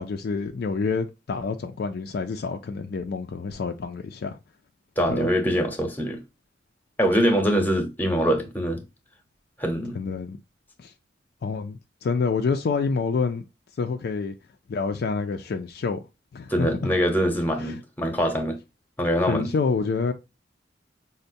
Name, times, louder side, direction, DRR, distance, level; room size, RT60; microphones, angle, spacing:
voice 1, 0.0-4.4 5.1-5.3 9.9-10.4 10.8-10.9 11.4-13.5 13.8-14.3 14.7-16.0 16.3-16.7 17.6-17.8 19.3-20.1, left 4 dB, 60° left, 0.4 m, -27 dB
voice 2, 5.0-6.2 7.0-8.8 9.6-10.0 16.5-18.6 19.0-19.5, equal, 10° left, 0.8 m, -23 dB
5.2 x 2.1 x 2.6 m
head